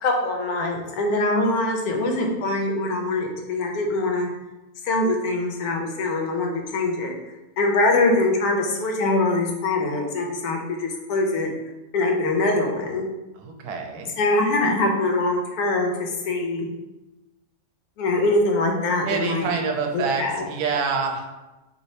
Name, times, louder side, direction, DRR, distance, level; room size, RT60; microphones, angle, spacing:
voice 1, 0.0-4.3 4.8-7.2 7.6-11.5 11.9-13.0 14.2-16.7 18.0-19.5 19.9-20.4, left 2 dB, 80° left, 1 dB, 1.1 m, -23 dB
voice 2, 13.3-14.1 19.0-21.3, right 5 dB, 85° right, 3 dB, 1.1 m, -26 dB
2.9 x 2.7 x 3.1 m, 1.0 s
omnidirectional pair, 1.6 m